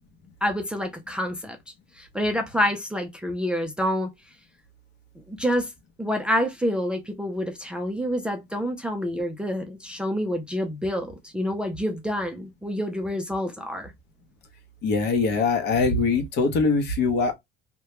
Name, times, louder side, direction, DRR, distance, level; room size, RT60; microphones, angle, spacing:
voice 1, 0.4-1.6 2.0-4.1 5.3-5.7 6.0-13.9, equal, 5° right, 0.4 m, -27 dB
voice 2, 14.8-17.3, left 4 dB, 55° left, 0.8 m, -22 dB
2.2 x 2.2 x 2.8 m
cardioid pair, 135°, 21 cm